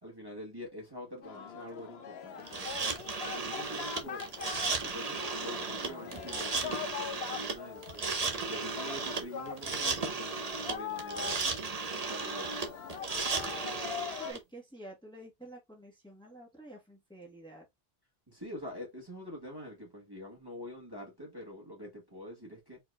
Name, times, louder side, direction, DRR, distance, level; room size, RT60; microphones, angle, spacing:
voice 1, 0.0-2.8 3.4-4.3 4.9-8.0 8.5-11.5 11.9-12.5 18.3-22.8, left 1 dB, 20° right, 1.5 m, -45 dB
Singing, 1.2-14.3, left 7 dB, 70° left, 1.0 m, -43 dB
sound 1, 2.5-14.4, right 4 dB, 40° right, 0.9 m, -35 dB
voice 2, 5.5-6.3 14.2-17.6, right 2 dB, 5° left, 1.4 m, -50 dB
4.5 x 3.9 x 2.4 m
omnidirectional pair, 1.1 m